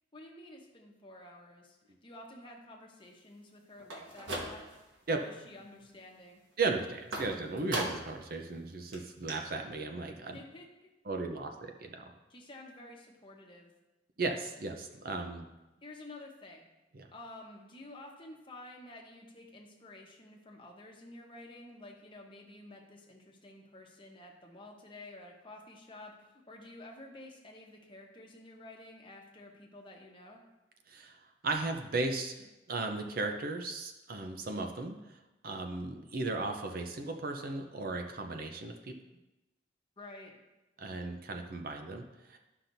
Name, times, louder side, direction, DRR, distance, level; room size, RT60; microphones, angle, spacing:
voice 1, 0.1-4.7 5.1-6.4 10.3-10.9 12.3-13.7 15.8-16.6 17.1-30.4 40.0-40.3, left 2 dB, 25° left, 0 dB, 1.0 m, -51 dB
sound 1, 3.8-4.9 5.3-5.8 7.1-8.2 8.6-8.7 8.9-9.0 9.3-9.4, right 1 dB, 80° right, 1.4 m, -39 dB
voice 2, 6.6-10.4 11.1-12.1 14.2-15.5 16.9-17.1 30.9-38.9 40.8-42.4, right 3 dB, 50° right, 4 dB, 0.6 m, -36 dB
11.5 x 5.8 x 2.7 m, 1.0 s
head